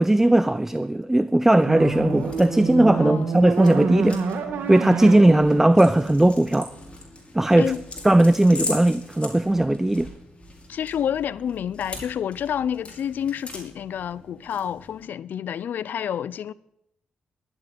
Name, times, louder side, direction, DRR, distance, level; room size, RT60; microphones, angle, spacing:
voice 1, 0.0-4.2 4.7-6.7 7.3-7.7 8.0-10.1, right 1 dB, 10° right, 0.5 m, -18 dB
sound 1, 1.7-15.1, left 2 dB, 35° left, 4.6 m, -41 dB
sound 2, 1.7-6.8, right 5 dB, 85° right, 1.7 m, -28 dB
voice 2, 2.9-3.3 7.6-7.8 10.7-16.5, left 9 dB, 70° left, 0.5 m, -29 dB
12.0 x 7.9 x 9.4 m
cardioid pair, 70°, 3 cm